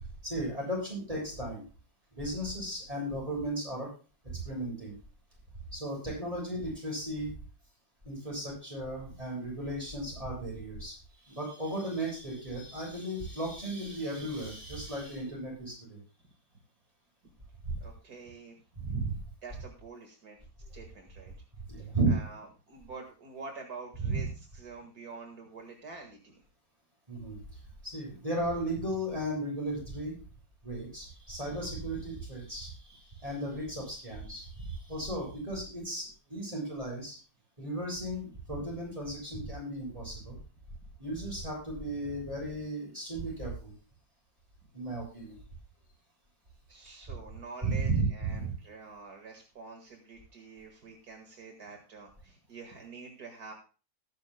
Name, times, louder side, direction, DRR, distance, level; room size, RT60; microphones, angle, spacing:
voice 1, 0.2-1.6 2.1-3.9 4.5-4.9 5.7-7.3 8.0-10.9 11.2-16.0 17.6-17.7 18.8-19.2 21.7-22.2 24.0-24.3 27.1-30.1 30.6-37.2 37.6-40.4 41.0-43.7 44.7-45.4 47.6-48.5, right 2 dB, 20° right, -3 dB, 7.5 m, -35 dB
voice 2, 17.8-18.6 19.4-20.4 20.7-21.3 21.8-24.3 24.5-26.4 46.7-53.5, right 4 dB, 70° right, 2 dB, 2.2 m, -47 dB
20.0 x 10.5 x 2.2 m, 0.34 s
omnidirectional pair, 1.7 m